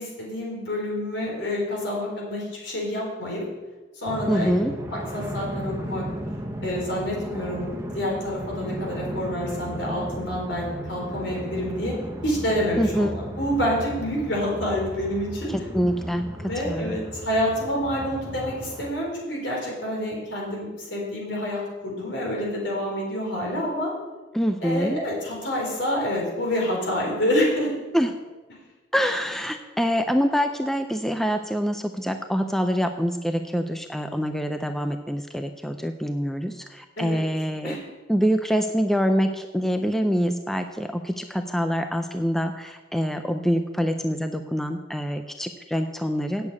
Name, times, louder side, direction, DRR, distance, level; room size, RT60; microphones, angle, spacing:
voice 1, 0.0-3.4 4.0-4.5 4.9-6.0 6.6-11.9 12.2-15.5 16.4-23.9 24.6-27.7 37.0-37.2 37.6-37.8, equal, 70° left, -2 dB, 3.9 m, -28 dB
sound 1, 4.1-18.9, equal, 15° right, 0.9 m, -35 dB
voice 2, 4.3-4.8 12.8-13.1 15.5-16.3 16.7-17.0 24.3-25.0 27.9-28.1 28.9-37.8 38.1-46.5, equal, ahead, 6 dB, 0.4 m, -25 dB
8.2 x 6.7 x 8.5 m, 1.2 s
head